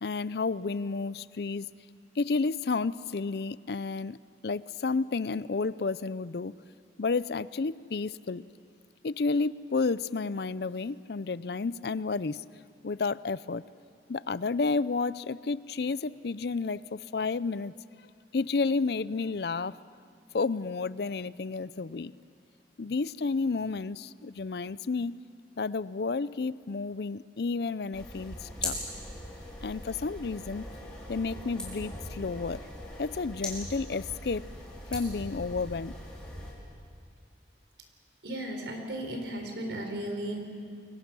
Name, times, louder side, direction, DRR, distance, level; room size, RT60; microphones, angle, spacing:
voice 1, 0.0-1.7 2.2-4.2 4.4-6.5 7.0-8.4 9.0-12.4 12.8-13.6 14.1-17.7 18.3-19.7 20.3-22.1 22.8-25.1 25.6-28.8 29.6-30.6 31.1-32.6 33.0-34.4 34.9-35.9, left 4 dB, 60° left, 18 dB, 0.5 m, -31 dB
sound 1, 27.9-36.5, left 1 dB, 5° left, 5.4 m, -40 dB
voice 2, 38.2-40.4, right 1 dB, 80° right, 4 dB, 4.2 m, -35 dB
29.5 x 23.5 x 6.2 m, 2.3 s
head